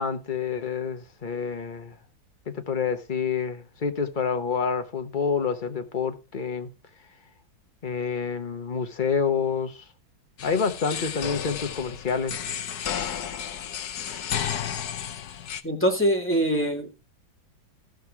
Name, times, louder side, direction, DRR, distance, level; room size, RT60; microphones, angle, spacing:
voice 1, 0.0-2.0 2.5-6.7 7.8-9.8 10.4-12.4, left 6 dB, 30° left, 1.0 m, -28 dB
sound 1, 10.4-15.6, left 9 dB, 60° left, 1.2 m, -32 dB
voice 2, 15.6-17.0, equal, 5° left, 2.3 m, -24 dB
15.5 x 5.6 x 4.7 m
omnidirectional pair, 2.2 m